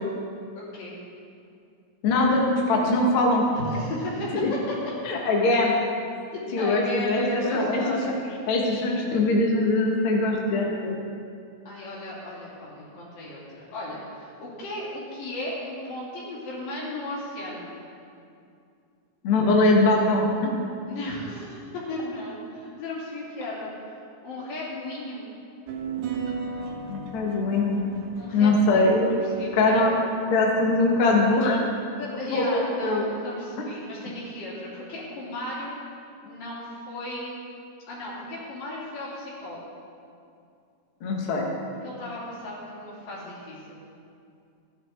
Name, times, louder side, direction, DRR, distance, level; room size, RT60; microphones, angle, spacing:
voice 1, 0.5-1.0 3.5-4.9 6.3-8.1 11.7-17.7 20.9-23.7 24.2-25.2 28.2-30.0 32.0-35.8 36.3-37.3 37.9-39.6 41.8-43.8, left 1 dB, 80° left, -6 dB, 4.4 m, -35 dB
voice 2, 2.0-3.4 4.3-4.5 5.0-5.8 6.5-8.0 8.5-11.0 19.2-20.5 26.9-27.8 28.3-29.2 29.5-29.9 30.3-31.6 32.3-33.0 33.6-33.7 41.0-41.5, left 2 dB, 50° left, -1 dB, 1.7 m, -22 dB
sound 1, 25.7-30.2, right 5 dB, 85° right, 2.9 m, -36 dB
15.0 x 10.0 x 3.6 m, 2.4 s
omnidirectional pair, 3.9 m